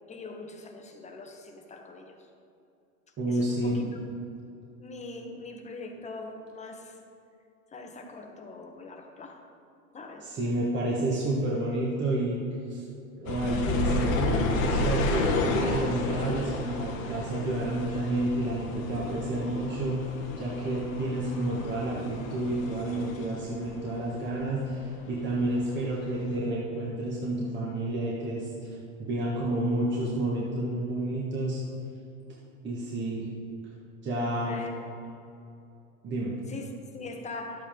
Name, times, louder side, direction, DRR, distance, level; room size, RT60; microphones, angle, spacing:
voice 1, 0.1-2.1 3.3-3.8 4.8-7.0 7.7-9.4 9.9-10.3 34.5-34.7 36.5-37.7, left 3 dB, 15° left, 3 dB, 1.2 m, -42 dB
voice 2, 3.2-3.8 10.2-12.4 12.7-12.8 13.2-20.0 20.4-31.6 32.6-33.3 34.0-34.6 36.0-36.3, right 1 dB, 25° right, -5 dB, 1.7 m, -30 dB
sound 1, 13.2-24.4 24.7-25.8 26.3-26.4, left 2 dB, 70° left, 1.6 m, -31 dB
11.5 x 8.5 x 3.8 m, 2.7 s
hypercardioid pair, 110°, 42 cm